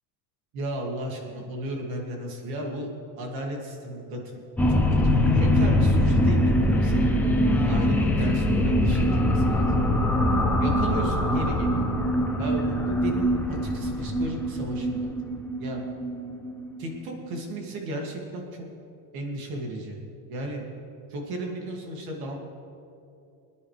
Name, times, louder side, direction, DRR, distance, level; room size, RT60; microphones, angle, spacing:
voice 1, 0.5-2.9 3.2-4.4 4.7-9.7 10.6-11.9 12.4-15.1 15.6-15.8 16.8-18.6 19.1-20.0 20.3-20.6 21.1-22.4, right 1 dB, 55° right, 0 dB, 2.5 m, -34 dB
sound 1, 4.6-17.4, left 1 dB, 5° left, 0.5 m, -23 dB
25.0 x 10.0 x 3.4 m, 2.6 s
cardioid pair, 175°, 43 cm